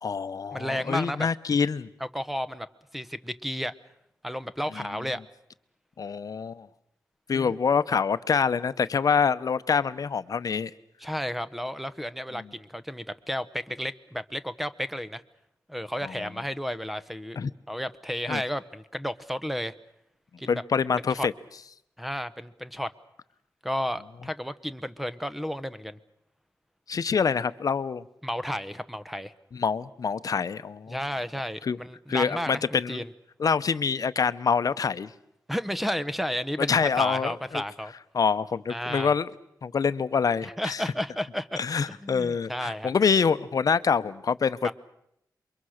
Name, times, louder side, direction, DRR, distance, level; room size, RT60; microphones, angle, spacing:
voice 1, 0.0-1.9 4.8-4.9 6.0-6.7 7.3-10.7 16.0-16.3 17.4-17.5 18.3-18.4 20.5-21.3 26.9-28.0 29.5-31.0 31.6-31.8 32.1-33.0 33.4-35.1 36.6-37.6 38.1-39.3 39.6-40.8 41.6-44.7, left 6 dB, 55° left, 14 dB, 0.9 m, -26 dB
voice 2, 0.5-1.3 2.0-2.7 2.9-3.7 4.2-5.2 7.3-7.6 11.0-15.2 15.7-17.4 17.7-19.7 20.4-20.6 21.2-21.3 22.0-22.9 23.6-26.0 28.2-29.3 30.9-33.1 35.5-37.9 38.7-39.1 40.4-41.6 41.9-42.9 44.6-44.7, equal, ahead, 13 dB, 1.0 m, -32 dB
28.5 x 23.5 x 6.6 m, 0.78 s
wide cardioid pair, 105°, 7 cm